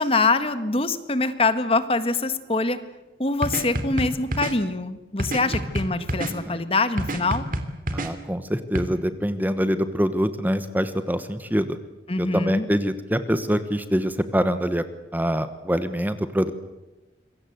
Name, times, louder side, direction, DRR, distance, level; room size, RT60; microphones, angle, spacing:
voice 1, 0.0-2.8 3.2-7.4 12.1-12.6, left 3 dB, 30° left, 11 dB, 1.6 m, -24 dB
sound 1, 3.4-4.5 5.2-6.3 7.0-8.1 8.7-8.8, right 1 dB, 50° right, 3.0 m, -27 dB
voice 2, 6.2-6.6 7.9-11.8 12.2-14.8 15.1-16.5, equal, 10° right, 11 dB, 1.2 m, -25 dB
27.0 x 23.0 x 8.0 m, 1.0 s
head